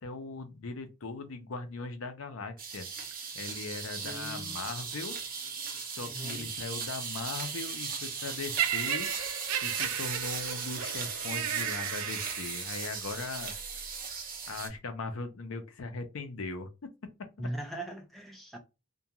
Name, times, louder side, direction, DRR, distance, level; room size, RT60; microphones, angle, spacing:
voice 1, 0.0-2.9 3.3-5.2 5.9-9.1 9.6-13.5 14.5-16.7 17.4-17.5, left 3 dB, 65° left, 0.5 m, -39 dB
sound 1, 2.6-14.7, right 5 dB, 40° right, 0.6 m, -37 dB
voice 2, 4.0-4.6 5.7-6.5 17.4-18.6, right 1 dB, ahead, 0.5 m, -40 dB
Laughter, 8.6-12.8 13.6-13.8, right 9 dB, 90° right, 0.4 m, -34 dB
2.4 x 2.2 x 2.8 m
head